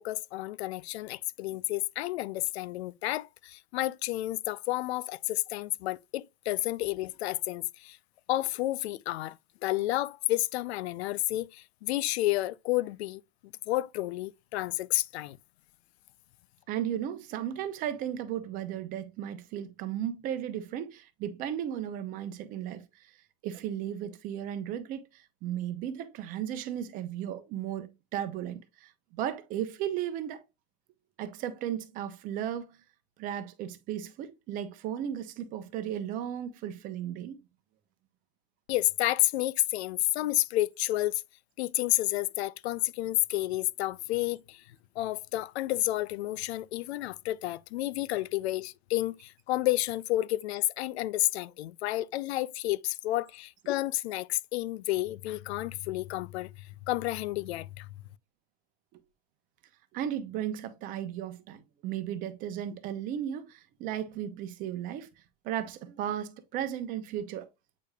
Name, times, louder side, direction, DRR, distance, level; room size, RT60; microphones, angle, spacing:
voice 1, 0.0-8.0 8.3-9.4 9.6-15.4 38.7-41.2 41.6-44.6 45.0-57.9, left 16 dB, 85° left, 0.5 m, -30 dB
voice 2, 16.7-22.8 23.4-30.4 31.2-32.8 33.2-37.4 59.9-65.1 65.4-67.5, right 10 dB, 25° right, 0.7 m, -35 dB
8.5 x 4.9 x 2.3 m
supercardioid pair, 170°, 32 cm